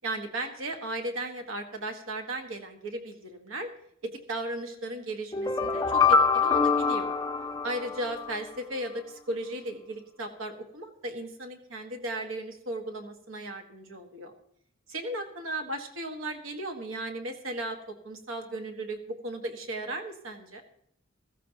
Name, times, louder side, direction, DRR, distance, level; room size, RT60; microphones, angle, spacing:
voice 1, 0.0-3.7 4.0-7.1 7.6-14.3 14.9-17.8 18.0-20.6, right 1 dB, 85° right, 5 dB, 1.6 m, -36 dB
sound 1, 5.3-8.4, left 5 dB, 20° left, 0.4 m, -25 dB
15.0 x 14.5 x 2.9 m, 0.70 s
head